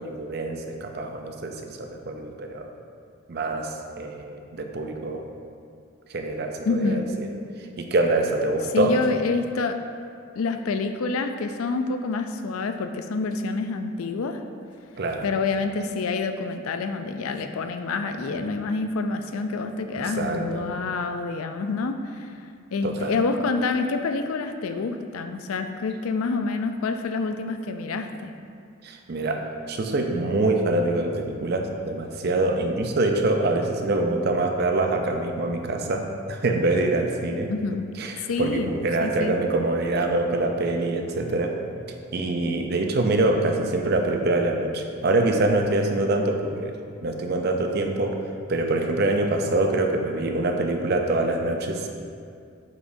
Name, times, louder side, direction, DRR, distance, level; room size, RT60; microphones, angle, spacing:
voice 1, 0.0-2.7 3.3-5.2 6.1-7.3 7.8-8.9 15.0-15.3 20.2-20.6 22.8-23.1 28.8-29.4 29.7-37.5 38.0-41.5 42.1-46.7 47.0-48.2 48.5-51.9, right 2 dB, 50° right, 4 dB, 0.5 m, -25 dB
voice 2, 6.6-7.1 8.7-9.8 10.4-14.4 15.2-22.3 22.7-28.3 37.5-37.9 38.3-38.7 39.0-39.3, left 4 dB, 85° left, 7 dB, 0.4 m, -27 dB
8.2 x 5.0 x 2.6 m, 2.3 s
head